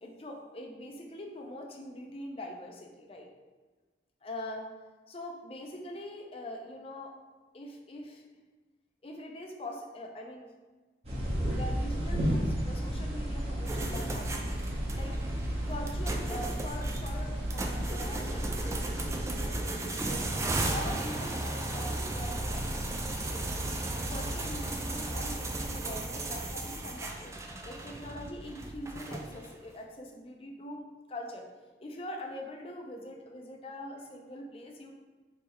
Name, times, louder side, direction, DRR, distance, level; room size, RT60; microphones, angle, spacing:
voice 1, 0.0-3.3 4.2-4.7 5.1-7.1 7.5-8.3 9.0-10.5 11.4-14.5 14.9-15.1 15.6-20.4 20.7-23.6 23.9-27.3 27.6-30.8 31.1-31.5 31.8-35.0, left 1 dB, 30° left, 1 dB, 0.5 m, -43 dB
sound 1, 11.0-19.5, equal, 35° right, 1.0 m, -33 dB
sound 2, 13.7-29.6, right 2 dB, 15° right, 0.3 m, -36 dB
3.5 x 3.2 x 4.5 m, 1.3 s
head